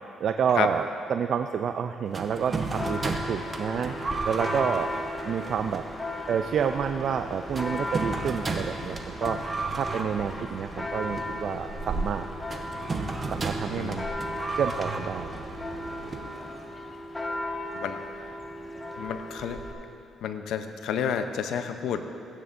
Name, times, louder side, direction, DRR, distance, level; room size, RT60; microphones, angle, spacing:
voice 1, 0.2-3.9 4.2-4.9 5.2-5.8 6.3-9.4 9.8-12.3 13.3-14.1 14.6-15.3, right 7 dB, 60° right, 7 dB, 0.3 m, -29 dB
sound 1, 2.1-16.8, right 3 dB, 35° right, 0.9 m, -35 dB
Church bell, 2.8-19.7, left 1 dB, 15° left, 1.2 m, -36 dB
sound 2, 6.7-16.2, right 3 dB, 80° right, 2.1 m, -42 dB
voice 2, 19.0-19.6 20.2-22.2, left 8 dB, 80° left, 8 dB, 0.6 m, -30 dB
16.0 x 9.4 x 2.6 m, 2.5 s
cardioid pair, 90°, 0 cm